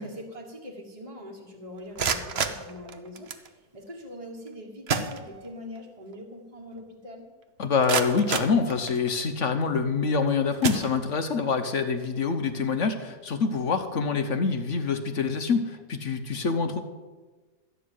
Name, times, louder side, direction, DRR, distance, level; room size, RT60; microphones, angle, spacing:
voice 1, 0.0-7.3, left 1 dB, 20° right, -2 dB, 1.4 m, -43 dB
sound 1, 1.8-3.5 4.5-4.6 4.9-5.8 6.1-6.2 6.8-6.9 7.4-9.3 9.9-10.1 10.6-11.4, right 5 dB, 45° right, 0.9 m, -31 dB
voice 2, 7.6-16.8, left 5 dB, 55° left, 7 dB, 1.0 m, -26 dB
13.5 x 6.2 x 9.2 m, 1.3 s
omnidirectional pair, 1.8 m